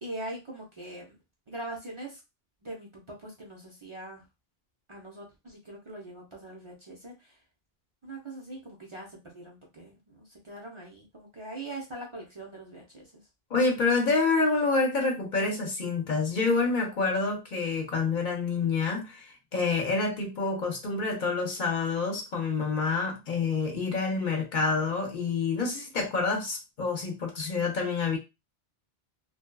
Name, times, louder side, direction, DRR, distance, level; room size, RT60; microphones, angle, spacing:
voice 1, 0.0-1.2 1.5-2.2 2.6-4.2 4.9-7.4 8.0-13.2, right 1 dB, 35° right, 0.6 m, -42 dB
voice 2, 13.5-28.2, left 4 dB, 55° left, 0.7 m, -27 dB
2.7 x 2.2 x 2.2 m
omnidirectional pair, 1.0 m